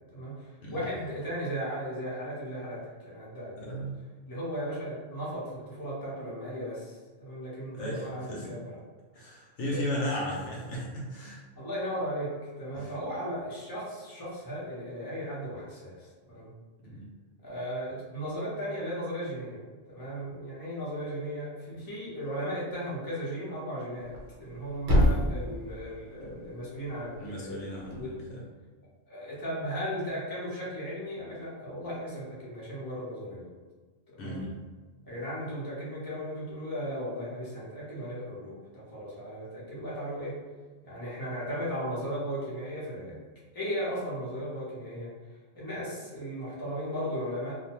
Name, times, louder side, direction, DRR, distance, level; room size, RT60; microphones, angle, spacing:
voice 1, 0.1-3.8 4.3-8.8 9.6-10.0 10.4-10.5 11.5-12.3 12.6-16.5 17.4-19.6 19.9-24.1 24.4-27.6 27.8-28.1 29.1-33.5 34.2-34.5 35.0-40.3 40.8-43.2 43.5-45.1 45.5-47.6, equal, 20° left, -8 dB, 0.7 m, -36 dB
voice 2, 3.6-3.9 7.7-8.6 9.1-11.4 12.7-12.9 16.8-17.1 26.2-26.3 27.2-28.4 34.2-34.6, equal, 75° left, -3 dB, 0.9 m, -35 dB
Thump thud, 24.0-28.1, equal, 65° right, 0.9 m, -30 dB
2.5 x 2.1 x 2.9 m, 1.4 s
omnidirectional pair, 1.3 m